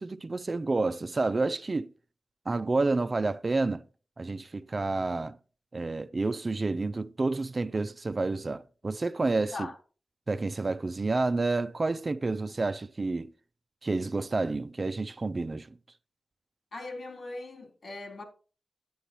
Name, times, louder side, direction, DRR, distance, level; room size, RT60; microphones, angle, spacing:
voice 1, 0.0-1.9 2.5-3.8 4.2-5.4 5.7-9.7 10.3-13.3 13.8-15.8, right 3 dB, 45° right, 0.6 m, -29 dB
voice 2, 16.7-18.2, left 2 dB, 70° left, 3.9 m, -40 dB
10.0 x 9.8 x 3.0 m
cardioid pair, 50°, 0 cm